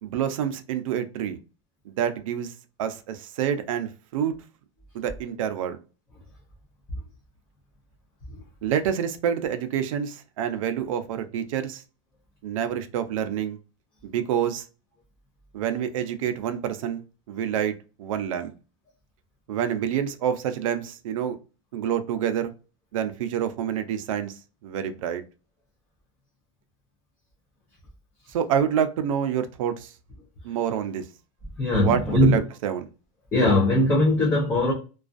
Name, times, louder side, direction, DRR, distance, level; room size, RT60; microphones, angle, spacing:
voice 1, 0.0-1.4 1.9-2.5 2.8-4.3 4.9-5.8 8.6-11.8 12.4-13.6 14.0-14.7 15.5-17.0 17.3-18.5 19.5-21.4 21.7-22.5 22.9-24.4 24.6-25.2 28.3-29.9 30.4-31.1 31.8-32.8, right 9 dB, 80° right, 0.5 m, -27 dB
voice 2, 31.6-32.4 33.3-34.7, left 1 dB, 10° left, 0.4 m, -20 dB
2.3 x 2.3 x 2.5 m
supercardioid pair, 175°, 17 cm